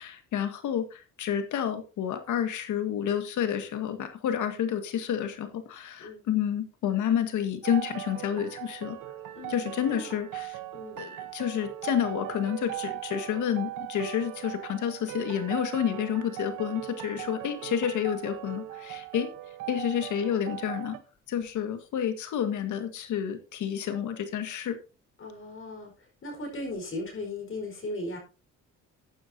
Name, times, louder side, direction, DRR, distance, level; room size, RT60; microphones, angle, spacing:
voice 1, 0.0-9.0 9.5-10.6 11.0-19.3 19.7-21.0 21.3-24.8, left 9 dB, 80° left, 9 dB, 1.9 m, -30 dB
sound 1, 7.6-21.0, right 15 dB, 85° right, 1.1 m, -39 dB
voice 2, 10.7-11.0 17.2-17.7 25.2-25.9 26.2-28.2, left 1 dB, 45° left, 2 dB, 4.8 m, -37 dB
14.5 x 9.3 x 2.8 m, 0.32 s
cardioid pair, 90°, 30 cm